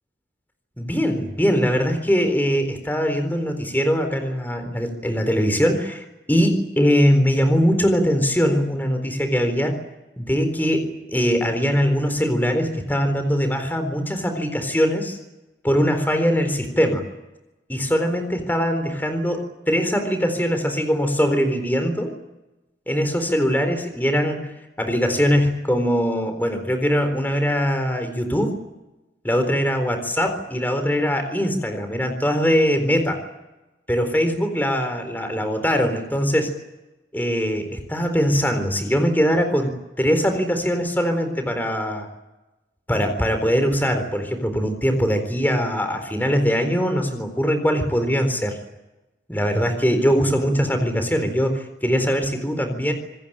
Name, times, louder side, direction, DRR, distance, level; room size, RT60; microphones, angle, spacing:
voice 1, 0.8-9.8 10.2-15.2 15.6-17.0 17.7-22.2 22.9-28.6 29.2-33.2 33.9-36.6 37.1-42.1 42.9-48.6 49.3-52.9, equal, 10° left, 7 dB, 4.0 m, -21 dB
26.5 x 21.0 x 8.8 m, 1.0 s
head